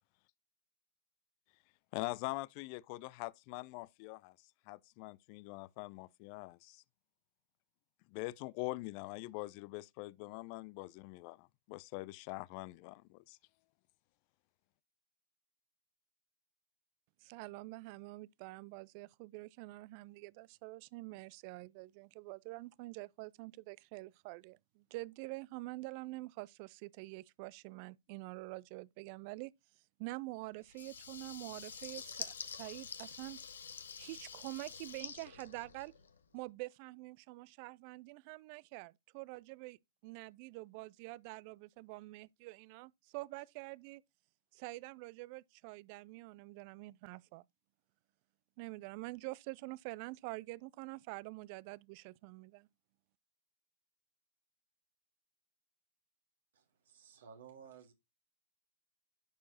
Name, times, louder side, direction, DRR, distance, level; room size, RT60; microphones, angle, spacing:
voice 1, 1.9-4.4 4.7-6.8 8.1-13.4, left 22 dB, 50° left, 0.4 m, -43 dB
voice 2, 17.2-29.5 30.0-33.4 34.0-35.9 36.3-39.8 40.0-44.0 44.5-47.4 48.6-52.7, right 22 dB, 50° right, 0.4 m, -46 dB
Water tap faucet / Liquid, 30.7-36.2, left 6 dB, 80° left, 0.9 m, -47 dB
voice 3, 56.5-57.9, right 7 dB, 70° right, 2.0 m, -56 dB
11.5 x 4.5 x 2.9 m
hypercardioid pair, 110°, 0 cm